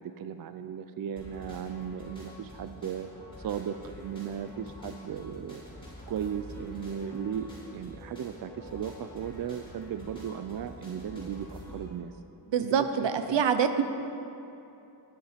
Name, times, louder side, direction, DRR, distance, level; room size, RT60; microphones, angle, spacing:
voice 1, 0.0-3.1 3.4-5.6 6.1-12.2 12.6-13.4, right 8 dB, 55° right, 9 dB, 0.4 m, -36 dB
sound 1, 1.2-11.8, left 1 dB, 10° left, 3.4 m, -47 dB
voice 2, 12.5-13.8, right 7 dB, 80° right, 9 dB, 0.8 m, -25 dB
13.5 x 10.0 x 5.1 m, 2.9 s
wide cardioid pair, 170°, 43 cm